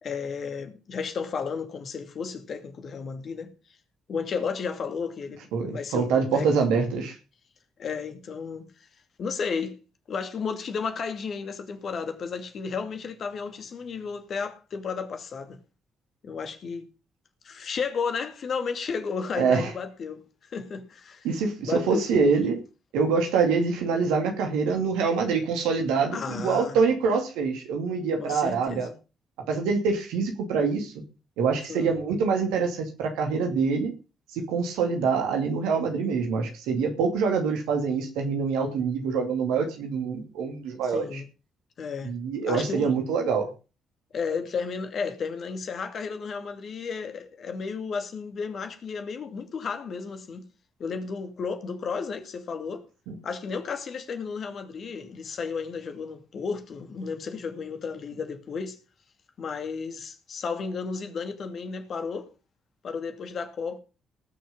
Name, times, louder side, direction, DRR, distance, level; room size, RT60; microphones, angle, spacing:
voice 1, 0.0-3.5 4.1-5.5 5.7-6.5 7.8-8.7 9.2-9.8 10.1-15.6 16.2-16.9 17.4-20.2 20.5-21.3 21.6-22.3 26.1-26.8 28.2-28.9 31.7-32.0 40.8-41.3 41.8-42.1 42.4-43.0 44.1-50.5 50.8-52.8 53.2-58.8 59.4-62.3 62.8-63.8, left 5 dB, 50° left, 2.5 m, -33 dB
voice 2, 5.5-7.2 19.4-19.7 21.2-22.6 22.9-28.9 29.5-30.9 31.4-33.9 34.3-41.2 42.0-43.5 53.1-53.2, right 5 dB, 70° right, 2.6 m, -25 dB
19.0 x 6.6 x 5.4 m
figure-of-eight pair, 40°, 0 cm